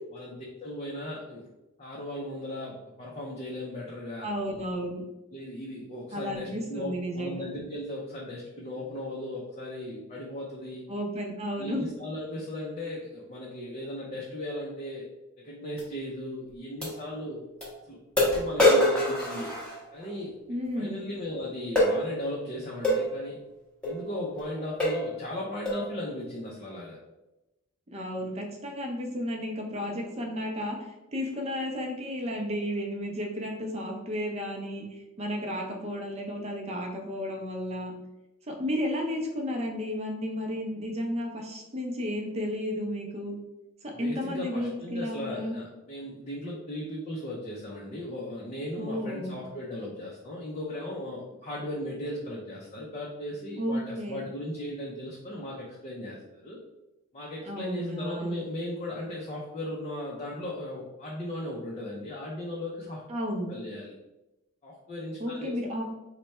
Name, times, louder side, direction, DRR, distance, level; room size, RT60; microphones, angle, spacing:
voice 1, 0.1-1.5 1.8-4.3 5.3-10.8 11.6-15.0 15.4-17.4 17.9-19.5 19.9-20.3 20.7-23.4 23.8-27.0 43.9-56.6 57.1-63.0 63.5-63.9 64.6-65.6, left 1 dB, 30° left, -4 dB, 0.5 m, -37 dB
voice 2, 4.2-5.0 6.1-7.4 10.9-11.8 20.5-21.1 27.9-37.9 38.5-43.3 43.8-45.6 48.8-49.3 53.6-54.2 57.4-58.4 63.1-63.5 65.2-65.8, equal, 30° right, 1 dB, 0.6 m, -33 dB
sound 1, 15.8-15.9 16.8-16.9 17.6-17.7 18.2-20.1 21.8-22.0 22.8-23.0 23.8-24.0 24.4-24.5 24.8-25.1 25.7-25.9, left 1 dB, 5° left, 0.8 m, -24 dB
3.2 x 2.2 x 4.1 m, 0.97 s
head